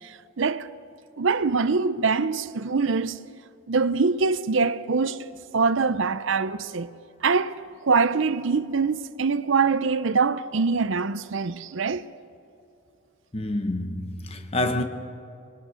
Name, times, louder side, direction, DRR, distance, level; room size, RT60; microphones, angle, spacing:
voice 1, 0.0-0.7 1.2-3.2 3.7-5.3 5.5-6.9 7.2-12.1, right 4 dB, 65° right, 0.6 m, -24 dB
voice 2, 13.3-14.8, left 1 dB, 30° left, 1.2 m, -27 dB
23.5 x 21.5 x 6.4 m
head